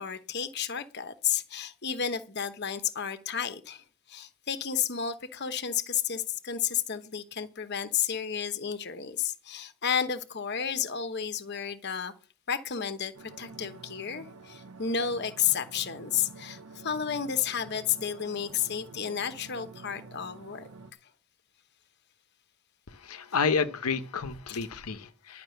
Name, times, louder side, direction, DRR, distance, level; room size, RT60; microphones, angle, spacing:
voice 1, 0.0-12.1 12.5-20.7 24.5-24.6, left 8 dB, 50° left, 1.0 m, -32 dB
sound 1, 13.1-20.9, right 3 dB, 75° right, 0.9 m, -49 dB
voice 2, 22.9-25.4, left 5 dB, 85° left, 0.9 m, -30 dB
11.5 x 6.0 x 7.7 m
head